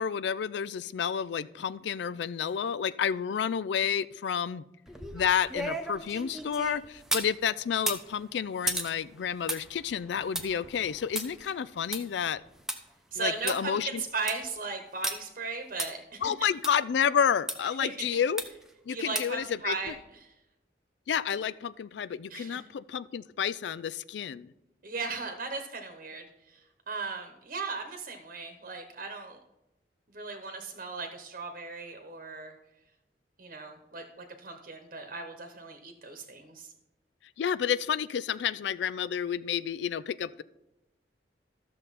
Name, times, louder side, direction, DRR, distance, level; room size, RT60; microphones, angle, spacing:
voice 1, 0.0-4.6 5.1-12.4 13.2-14.0 16.2-18.4 18.9-19.9 21.1-24.5 37.4-40.4, left 8 dB, 75° left, 18 dB, 0.3 m, -30 dB
sound 1, 4.9-7.3 7.7-12.8 13.1-13.2 13.5-13.6 14.0-14.5 15.0-15.1 15.8-15.9 16.6-16.7 17.5-17.6 18.4-18.7 19.1-19.4 19.8-19.9, right 1 dB, 5° right, 0.8 m, -35 dB
voice 2, 13.1-16.3 17.8-18.2 18.9-19.9 20.2-20.3 22.3-22.6 24.8-29.4 30.1-32.5 33.4-36.7, right 4 dB, 50° right, 5 dB, 1.1 m, -37 dB
13.0 x 6.8 x 4.1 m, 0.94 s
head